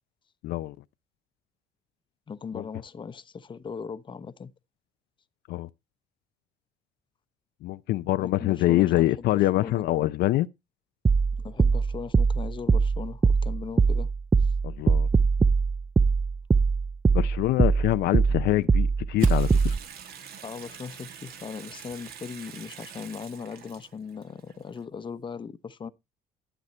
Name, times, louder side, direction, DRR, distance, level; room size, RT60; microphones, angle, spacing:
voice 1, 0.4-0.7 2.5-2.6 5.5-5.7 7.6-10.5 14.6-15.1 17.1-19.7, left 16 dB, 75° left, 0.6 m, -25 dB
voice 2, 2.3-4.5 8.2-9.3 9.6-9.8 11.4-14.1 20.4-25.9, left 6 dB, 30° left, 0.9 m, -38 dB
sound 1, 11.1-19.8, right 4 dB, 15° right, 0.5 m, -22 dB
Fire, 19.2-22.9, right 5 dB, 50° right, 2.1 m, -51 dB
Water tap faucet / Sink (filling or washing) / Bathtub (filling or washing), 19.2-24.8, right 8 dB, 65° right, 2.4 m, -46 dB
12.5 x 8.2 x 4.3 m
cardioid pair, 110°, 17 cm